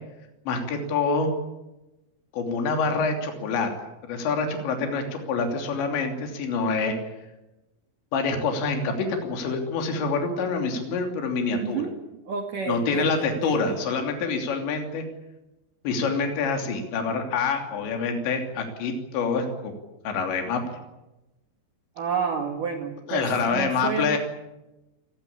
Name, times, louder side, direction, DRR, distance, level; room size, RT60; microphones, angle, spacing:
voice 1, 0.5-1.3 2.3-3.7 4.1-6.9 8.1-11.8 12.7-15.1 15.9-19.7 20.1-20.6 23.1-24.2, left 4 dB, 75° left, 3 dB, 5.3 m, -26 dB
voice 2, 11.6-11.9 12.3-13.8 22.0-24.2, right 5 dB, 55° right, 4 dB, 3.1 m, -30 dB
27.0 x 20.0 x 8.7 m, 0.98 s
omnidirectional pair, 5.2 m